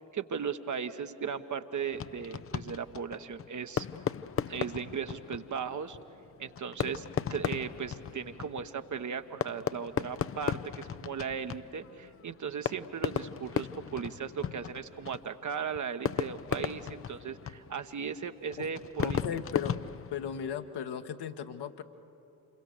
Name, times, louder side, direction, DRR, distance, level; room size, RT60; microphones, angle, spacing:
voice 1, 0.1-3.9 4.5-6.0 6.4-7.0 7.3-19.2, right 6 dB, 35° right, 8 dB, 1.1 m, -37 dB
Fireworks, 1.9-20.7, left 8 dB, 30° left, 0.6 m, -37 dB
voice 2, 19.0-19.8 20.1-21.8, left 8 dB, 55° left, 7 dB, 1.3 m, -36 dB
27.5 x 23.0 x 6.7 m, 2.9 s
figure-of-eight pair, 40°, 49 cm